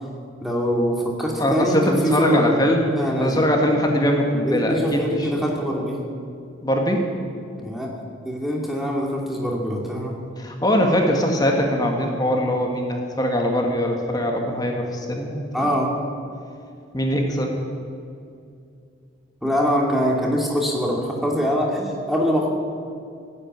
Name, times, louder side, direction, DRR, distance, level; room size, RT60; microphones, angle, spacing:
voice 1, 0.4-2.6 3.0-3.4 4.4-6.0 7.6-7.9 8.2-10.2 15.5-15.9 19.4-22.5, equal, ahead, -2 dB, 2.4 m, -23 dB
voice 2, 1.4-2.9 3.2-5.3 6.6-7.1 10.4-15.7 16.9-17.5, equal, 20° left, 2 dB, 1.6 m, -22 dB
16.5 x 8.7 x 9.4 m, 2.4 s
head